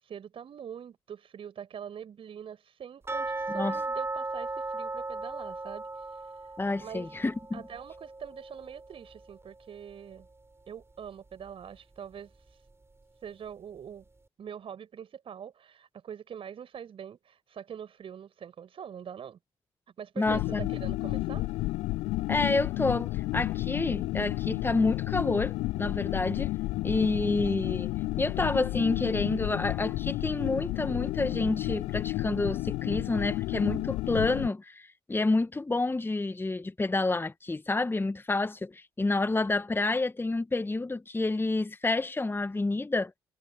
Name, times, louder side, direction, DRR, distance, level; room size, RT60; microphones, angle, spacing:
voice 1, 0.0-6.5 6.8-7.1 7.5-10.3 10.7-12.6 13.2-14.1 14.4-19.4 20.0-21.6, right 8 dB, 55° right, 5.5 m, -44 dB
sound 1, 3.1-9.9 10.2-10.3 10.8-10.9 11.5-11.6, right 2 dB, 20° right, 5.1 m, -37 dB
voice 2, 6.6-7.6 20.2-20.7 22.3-26.5 26.8-27.9 28.2-43.1, left 2 dB, 20° left, 1.4 m, -29 dB
sound 2, 20.2-34.5, left 18 dB, 65° left, 0.4 m, -31 dB
figure-of-eight pair, 40°, 12 cm